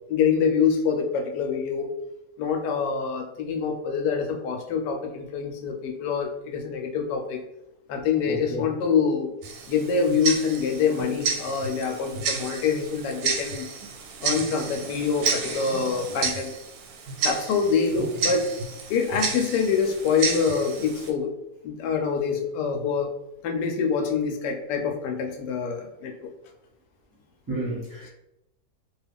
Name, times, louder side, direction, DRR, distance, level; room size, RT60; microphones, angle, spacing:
voice 1, 0.1-1.9 2.4-7.4 7.9-9.3 9.7-13.7 14.2-16.5 17.2-18.4 18.9-21.3 21.6-23.1 23.4-26.3, left 6 dB, 85° left, 3 dB, 1.2 m, -25 dB
voice 2, 8.3-8.6 17.9-18.1 27.5-28.1, right 1 dB, 20° right, -6 dB, 0.6 m, -31 dB
Tick-tock, 9.4-21.1, right 5 dB, 70° right, 0.9 m, -31 dB
2.9 x 2.3 x 3.4 m, 0.86 s
omnidirectional pair, 1.8 m